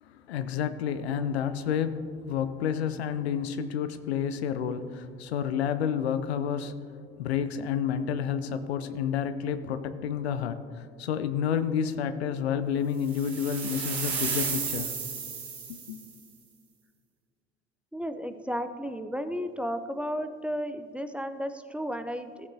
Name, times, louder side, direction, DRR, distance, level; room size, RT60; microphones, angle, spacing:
voice 1, 0.0-6.9 7.2-14.9 15.7-16.0, left 8 dB, 80° left, 11 dB, 0.6 m, -30 dB
sound 1, 13.1-16.1, right 6 dB, 80° right, 1.6 m, -33 dB
voice 2, 17.9-22.5, equal, 5° right, 9 dB, 0.7 m, -33 dB
16.5 x 8.2 x 2.8 m, 2.2 s
hypercardioid pair, 55°, 31 cm